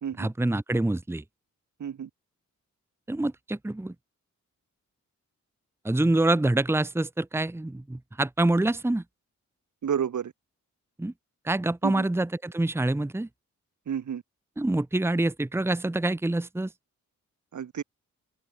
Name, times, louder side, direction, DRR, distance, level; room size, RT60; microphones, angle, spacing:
voice 1, 0.2-1.2 3.1-3.9 5.8-9.0 11.0-11.1 11.4-13.3 14.6-16.7, right 2 dB, 10° right, 0.9 m, -26 dB
voice 2, 1.8-2.1 9.8-10.3 11.8-12.1 13.9-14.2 17.5-17.8, right 8 dB, 70° right, 1.7 m, -30 dB
open air
wide cardioid pair, 105°, 31 cm